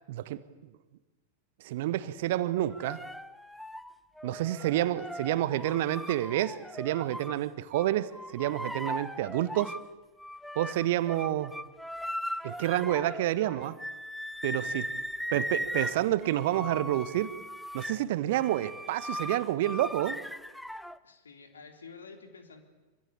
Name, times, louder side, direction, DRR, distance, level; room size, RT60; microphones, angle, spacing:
voice 1, 0.1-0.4 1.6-3.0 4.2-9.7 10.5-11.6 12.4-13.8 14.4-14.8 15.3-17.3 17.7-20.2, right 14 dB, 55° right, 15 dB, 1.3 m, -29 dB
sound 1, 2.7-7.4 7.7-9.9 10.2-21.0, equal, ahead, 0.9 m, -39 dB
voice 2, 14.6-15.0 21.0-22.6, left 5 dB, 70° left, 5 dB, 4.0 m, -50 dB
26.0 x 25.0 x 8.5 m, 1.2 s
figure-of-eight pair, 90°, 0 cm